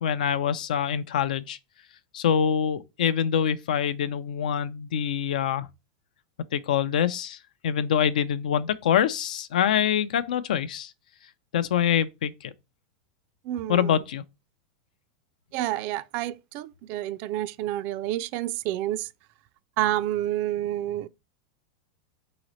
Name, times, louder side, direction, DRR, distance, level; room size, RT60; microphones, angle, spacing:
voice 1, 0.0-1.6 2.1-5.7 6.5-7.4 7.6-10.9 11.5-12.5 13.7-14.2, left 8 dB, 90° left, 0.5 m, -25 dB
voice 2, 13.5-13.9 15.5-19.1 19.8-21.1, right 14 dB, 45° right, 0.3 m, -29 dB
4.1 x 3.9 x 3.0 m
supercardioid pair, 140°, 4 cm